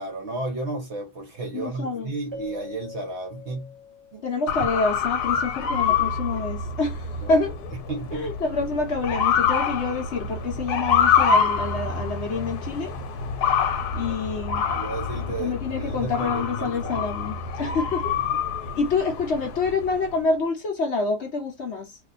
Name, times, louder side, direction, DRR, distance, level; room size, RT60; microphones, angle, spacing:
voice 1, 0.0-3.8 4.1-4.2 7.2-7.4 7.9-8.3 14.7-17.1 17.6-17.8 18.3-18.4, right 2 dB, 55° right, 0.9 m, -33 dB
voice 2, 1.5-2.1 4.2-7.5 8.1-12.9 13.9-14.6 15.4-18.1 18.7-22.0, left 4 dB, 60° left, 0.8 m, -27 dB
Keyboard (musical), 2.3-4.8, left 4 dB, 20° right, 0.9 m, -42 dB
Motor vehicle (road) / Siren, 4.5-20.0, left 6 dB, 75° left, 1.2 m, -26 dB
2.6 x 2.4 x 3.9 m
omnidirectional pair, 1.7 m